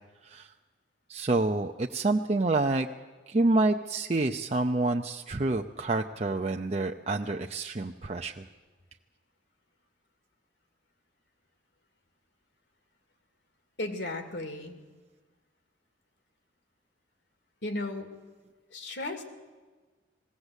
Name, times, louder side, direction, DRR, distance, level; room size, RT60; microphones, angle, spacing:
voice 1, 1.1-2.9 3.3-8.4, right 2 dB, 35° right, 3 dB, 0.6 m, -28 dB
voice 2, 13.8-14.8 17.6-18.1 18.7-19.2, left 2 dB, 75° left, 5 dB, 2.5 m, -35 dB
20.0 x 16.5 x 8.2 m, 1.3 s
head